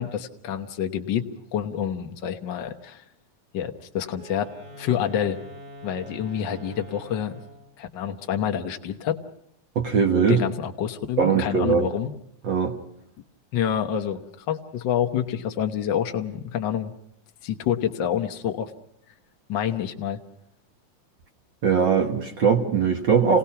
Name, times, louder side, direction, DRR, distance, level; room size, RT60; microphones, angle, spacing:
voice 1, 0.0-3.0 3.5-4.5 4.8-5.4 5.8-7.3 7.8-9.2 10.3-12.1 13.5-16.9 17.4-18.7 19.5-20.2, left 9 dB, 60° left, 5 dB, 1.2 m, -27 dB
Wind instrument woodwind instrument, 4.1-7.8, equal, 75° right, 5.8 m, -44 dB
voice 2, 9.7-10.4 11.2-11.9 12.4-12.7 21.6-23.4, right 6 dB, 50° right, 5 dB, 1.5 m, -20 dB
28.5 x 18.5 x 5.8 m, 0.73 s
omnidirectional pair, 3.7 m